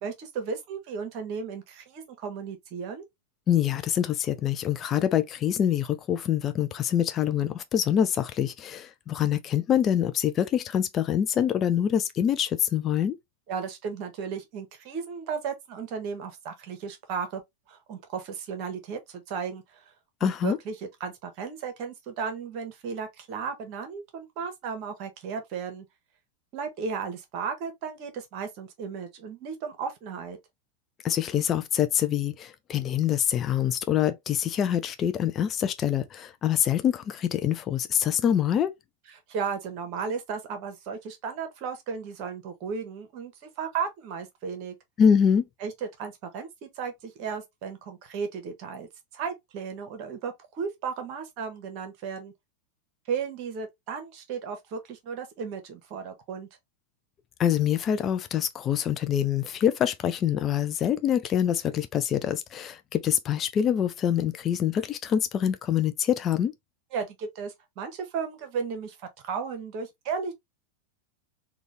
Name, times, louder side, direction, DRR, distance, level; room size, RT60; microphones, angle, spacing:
voice 1, 0.0-3.0 13.5-17.4 17.7-19.9 20.2-25.9 26.5-30.4 39.3-44.7 45.6-52.3 53.1-56.5 66.9-69.0 69.2-70.3, right 6 dB, 40° right, 1.1 m, -35 dB
voice 2, 3.5-13.2 20.2-20.6 31.0-38.7 45.0-45.5 57.4-66.5, left 9 dB, 30° left, 0.4 m, -25 dB
3.7 x 2.3 x 3.2 m
figure-of-eight pair, 90°, 0 cm